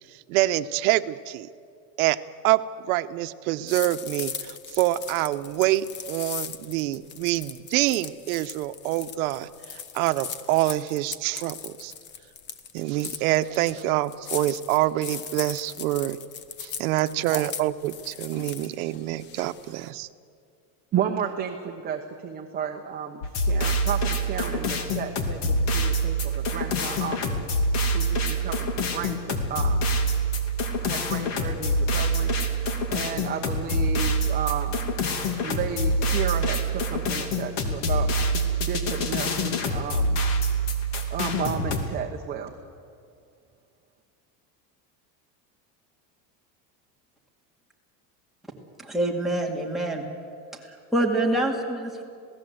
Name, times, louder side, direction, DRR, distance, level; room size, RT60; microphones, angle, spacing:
voice 1, 0.3-1.5 2.0-9.5 9.9-11.9 12.7-16.2 16.6-20.1, right 16 dB, 75° right, 12 dB, 1.0 m, -26 dB
sound 1, 3.7-19.9, left 7 dB, 25° left, 0.8 m, -39 dB
voice 2, 20.9-27.4 27.9-29.9 30.8-32.3 32.6-34.8 35.4-40.2 41.1-42.5, right 8 dB, 20° right, 3 dB, 1.1 m, -33 dB
sound 2, 23.2-41.8, right 1 dB, 55° left, 2.6 m, -25 dB
voice 3, 48.8-50.0 50.6-52.0, right 1 dB, ahead, 3 dB, 2.2 m, -26 dB
27.5 x 18.0 x 7.9 m, 2.3 s
cardioid pair, 170°, 42 cm